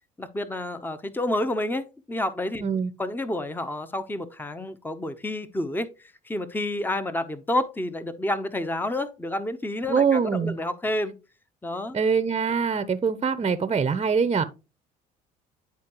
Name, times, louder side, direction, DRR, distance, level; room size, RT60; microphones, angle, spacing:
voice 1, 0.2-2.6 3.0-5.9 6.2-11.1 11.6-12.0, left 1 dB, 10° left, 0.8 m, -29 dB
voice 2, 9.9-10.6 11.9-14.4, right 6 dB, 30° right, 0.7 m, -23 dB
10.5 x 4.4 x 3.0 m
supercardioid pair, 70°, 19 cm